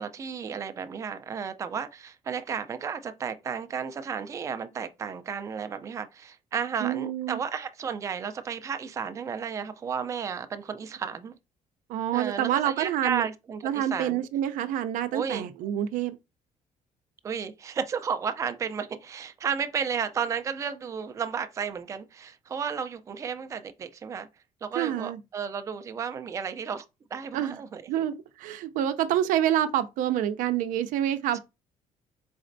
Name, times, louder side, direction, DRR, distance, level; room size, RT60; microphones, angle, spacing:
voice 1, 0.0-11.4 12.1-14.2 15.1-15.5 17.2-24.3 24.6-26.9 27.1-27.8 31.3-31.4, right 6 dB, 25° right, 0.4 m, -33 dB
voice 2, 6.8-7.4 11.9-13.3 13.6-16.2 24.8-25.2 27.3-27.6 27.9-31.4, right 11 dB, 85° right, 0.5 m, -27 dB
4.2 x 4.0 x 2.5 m
cardioid pair, 165°, 13 cm